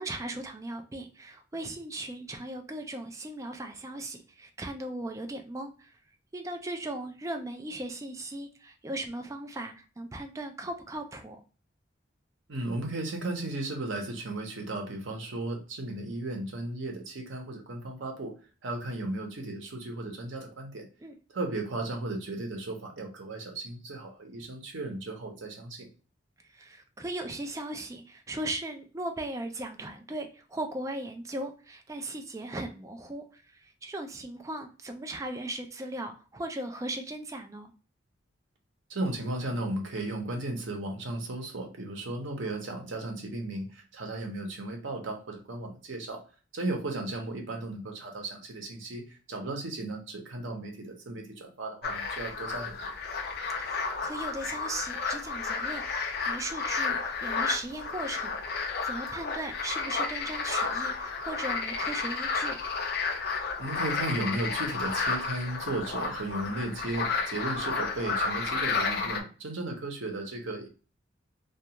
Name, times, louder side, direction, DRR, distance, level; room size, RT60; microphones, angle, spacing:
voice 1, 0.0-6.0 6.3-11.4 21.0-21.2 26.5-37.7 53.6-62.6, right 1 dB, 15° right, 5 dB, 0.3 m, -38 dB
voice 2, 12.5-18.3 18.6-20.9 21.3-25.9 38.9-46.2 46.5-52.8 63.6-70.7, right 2 dB, 85° right, 3 dB, 0.7 m, -35 dB
sound 1, 51.8-69.2, left 4 dB, 55° left, 0.5 m, -32 dB
2.3 x 2.3 x 2.8 m, 0.36 s
head